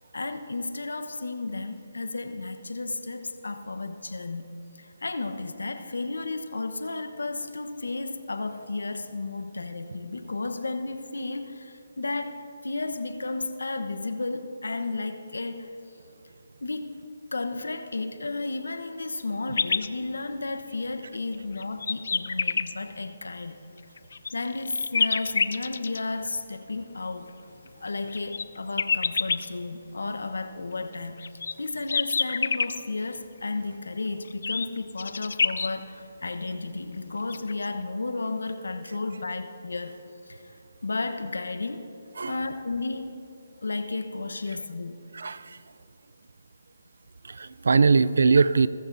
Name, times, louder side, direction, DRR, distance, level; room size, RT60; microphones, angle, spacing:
voice 1, 0.1-4.5 4.7-15.7 16.6-17.0 17.3-23.6 24.3-27.3 27.8-31.2 31.6-40.0 40.3-40.6 40.8-41.9 42.2-43.2 43.6-45.0, left 3 dB, 85° left, 7 dB, 1.0 m, -33 dB
Nightingale Denmark, 19.5-19.9 20.6-20.7 21.3-22.7 23.8-26.0 27.7-29.5 30.9-32.8 34.3-35.7 36.9-37.0 37.3-37.7, left 5 dB, 65° left, 0.5 m, -27 dB
voice 2, 45.1-45.6 47.2-48.7, right 4 dB, 75° right, 16 dB, 0.4 m, -21 dB
22.0 x 14.0 x 2.7 m, 2.6 s
hypercardioid pair, 155°, 0 cm